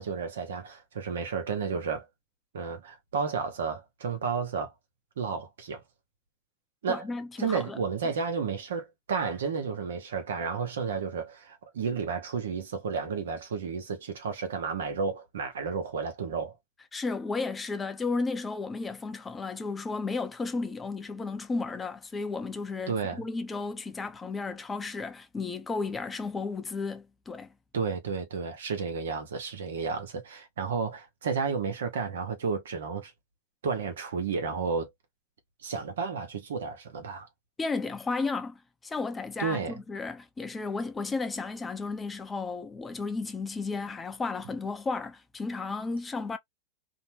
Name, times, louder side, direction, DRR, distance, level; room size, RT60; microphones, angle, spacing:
voice 1, 0.0-2.1 2.5-4.7 5.2-5.8 6.8-7.0 7.4-16.6 22.9-23.2 27.7-33.1 33.6-34.9 35.6-37.3 39.4-39.8, right 5 dB, 85° right, 0.9 m, -32 dB
voice 2, 6.9-7.8 16.9-27.5 37.6-46.4, left 4 dB, 15° left, 0.6 m, -33 dB
2.8 x 2.1 x 2.9 m
hypercardioid pair, 115°, 0 cm